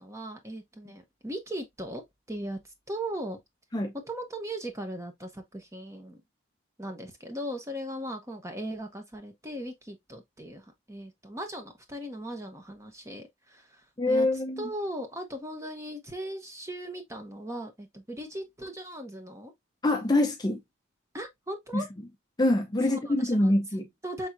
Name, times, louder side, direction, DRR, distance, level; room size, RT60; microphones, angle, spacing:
voice 1, 0.0-3.4 4.0-6.2 6.8-19.5 21.1-21.9 22.9-23.5 24.0-24.3, right 1 dB, 15° right, 0.9 m, -38 dB
voice 2, 14.0-14.6 19.8-20.6 21.7-21.8 22.4-23.9, left 1 dB, 20° left, 0.5 m, -25 dB
5.8 x 3.5 x 2.5 m
head